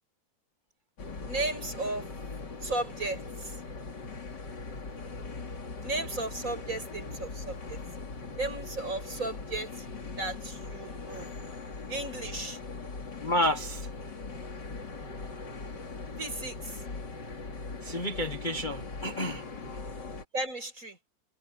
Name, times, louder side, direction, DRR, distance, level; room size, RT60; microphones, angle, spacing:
sound 1, 1.0-20.2, left 3 dB, 65° left, 3.4 m, -40 dB
voice 1, 1.2-2.1 2.6-3.5 5.8-7.8 8.4-9.9 10.2-11.3 11.9-12.6 16.2-16.8 20.3-21.0, right 2 dB, 45° right, 7.5 m, -35 dB
voice 2, 13.2-13.9 17.8-19.4, left 1 dB, 25° left, 1.4 m, -30 dB
omnidirectional pair, 2.1 m